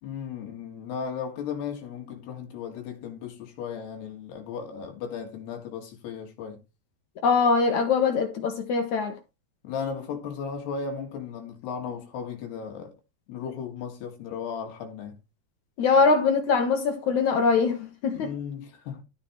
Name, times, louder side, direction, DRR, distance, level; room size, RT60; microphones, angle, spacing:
voice 1, 0.0-6.6 9.6-12.9 13.3-15.2 18.1-19.0, left 6 dB, 80° left, 4.1 m, -35 dB
voice 2, 7.2-9.1 15.8-18.3, left 4 dB, 60° left, 2.3 m, -22 dB
14.5 x 5.2 x 4.4 m
omnidirectional pair, 4.6 m